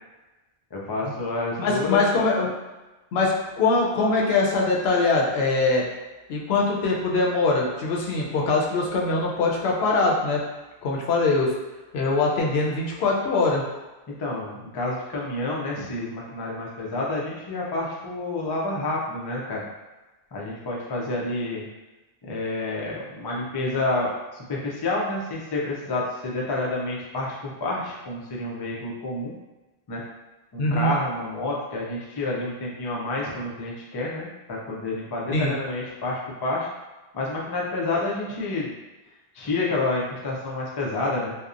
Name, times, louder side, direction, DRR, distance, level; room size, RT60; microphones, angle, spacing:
voice 1, 0.7-2.0 14.1-19.6 20.3-21.7 22.2-29.3 29.9-30.0 30.5-36.7 37.1-38.7 39.3-41.4, left 2 dB, 40° left, -3 dB, 0.3 m, -29 dB
voice 2, 1.6-2.5 3.1-5.8 6.3-10.4 10.8-11.5 11.9-13.6 30.6-30.9 35.3-35.5, left 3 dB, 80° left, -2 dB, 0.8 m, -22 dB
2.8 x 2.0 x 2.4 m, 1.1 s
omnidirectional pair, 1.0 m